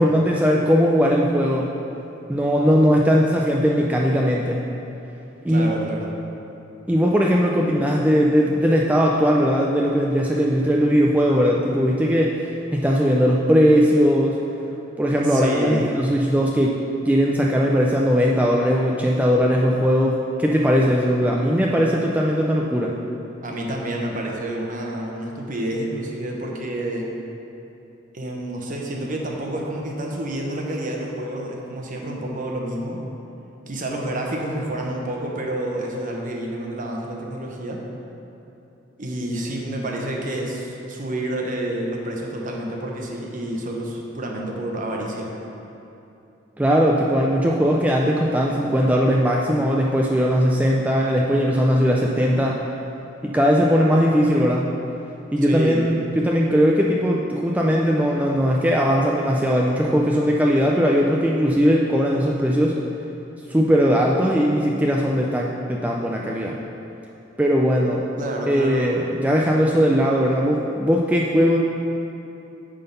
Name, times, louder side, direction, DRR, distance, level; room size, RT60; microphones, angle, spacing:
voice 1, 0.0-1.7 2.3-4.6 5.4-5.7 6.9-12.4 12.7-14.4 15.0-16.8 17.1-23.0 46.6-52.6 53.2-54.7 55.3-62.8 63.5-66.6 67.4-68.0 68.5-71.6, equal, 10° right, -2 dB, 0.4 m, -19 dB
voice 2, 5.5-6.1 15.2-15.9 23.4-27.1 28.1-33.0 33.7-37.8 39.0-45.3 51.3-51.4 55.4-55.9 68.2-68.9, right 1 dB, 45° right, 0 dB, 0.9 m, -29 dB
8.9 x 3.8 x 5.5 m, 2.8 s
head